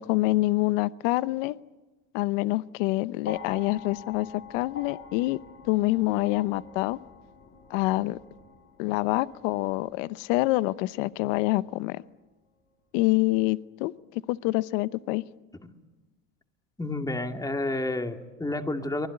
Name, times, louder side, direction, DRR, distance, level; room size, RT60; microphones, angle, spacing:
voice 1, 0.0-1.6 2.1-5.4 5.6-7.0 7.7-8.2 8.8-12.0 12.9-15.2, left 19 dB, 75° left, 17 dB, 0.9 m, -26 dB
sound 1, 3.2-11.5 12.6-12.7, left 5 dB, 35° left, 6.7 m, -46 dB
voice 2, 16.8-19.1, left 2 dB, 10° left, 5 dB, 2.4 m, -30 dB
24.5 x 20.5 x 9.8 m, 1.1 s
supercardioid pair, 110°, 39 cm